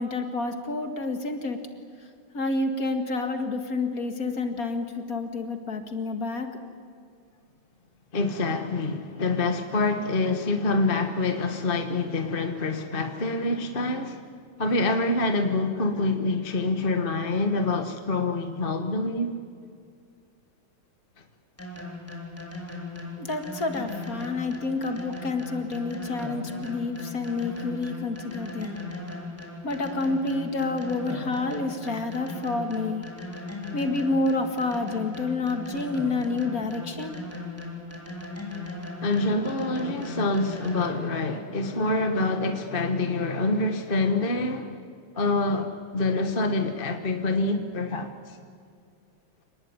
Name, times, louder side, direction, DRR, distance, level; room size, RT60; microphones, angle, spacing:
voice 1, 0.0-1.6 2.3-6.6 23.2-28.8 29.6-33.0 33.7-37.2, left 3 dB, 45° left, 2.4 m, -29 dB
voice 2, 8.1-14.2 14.6-19.4 39.0-44.8 45.1-48.4, left 2 dB, 30° left, 1.5 m, -26 dB
sound 1, 21.6-41.2, left 2 dB, 5° left, 3.6 m, -38 dB
27.5 x 19.5 x 9.7 m
omnidirectional pair, 2.2 m